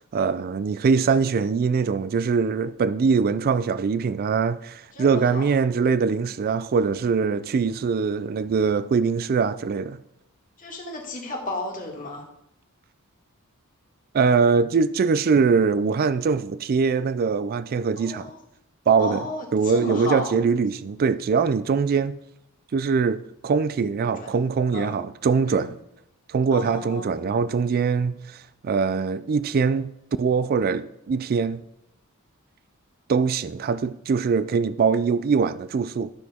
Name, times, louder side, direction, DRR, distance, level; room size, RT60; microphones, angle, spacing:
voice 1, 0.0-10.0 14.1-18.3 18.9-19.2 19.5-22.2 22.7-25.7 26.3-28.2 28.6-29.9 30.2-31.6 33.1-36.1, right 5 dB, 45° right, 0.3 m, -22 dB
voice 2, 4.9-5.5 10.6-12.2 18.0-18.4 19.0-20.3 24.0-24.3 24.7-25.0 25.5-25.7 26.5-27.2, left 2 dB, 40° left, 2.1 m, -33 dB
13.0 x 6.1 x 3.6 m
head